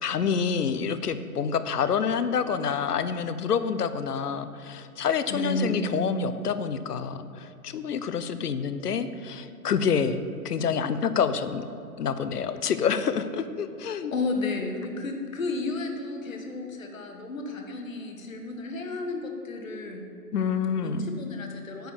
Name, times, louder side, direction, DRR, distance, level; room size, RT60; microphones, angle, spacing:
voice 1, 0.0-10.2 10.4-11.6 12.0-14.1 20.3-21.0, left 6 dB, 75° left, 11 dB, 0.8 m, -27 dB
voice 2, 5.3-6.0 14.1-20.1 20.8-21.9, left 2 dB, 55° left, 3 dB, 1.3 m, -32 dB
9.1 x 4.7 x 7.0 m, 2.6 s
hypercardioid pair, 170°, 47 cm